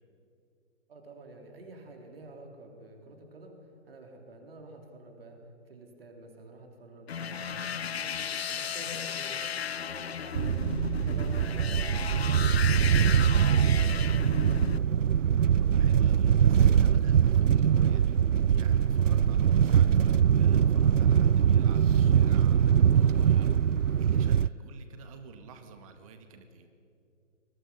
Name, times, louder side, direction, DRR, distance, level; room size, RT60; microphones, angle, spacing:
voice 1, 0.9-5.4 5.7-8.1 8.6-9.5 9.8-10.6 10.9-14.1 14.4-15.2, right 2 dB, 50° right, 2 dB, 3.9 m, -49 dB
sound 1, 7.1-14.8, left 8 dB, 55° left, 0.5 m, -35 dB
voice 2, 7.1-8.8 15.6-23.5 24.0-26.7, right 5 dB, 25° right, 7 dB, 1.9 m, -50 dB
sound 2, 10.3-24.5, right 8 dB, 75° right, 0.5 m, -23 dB
29.5 x 22.0 x 5.7 m, 2.6 s
figure-of-eight pair, 135°, 38 cm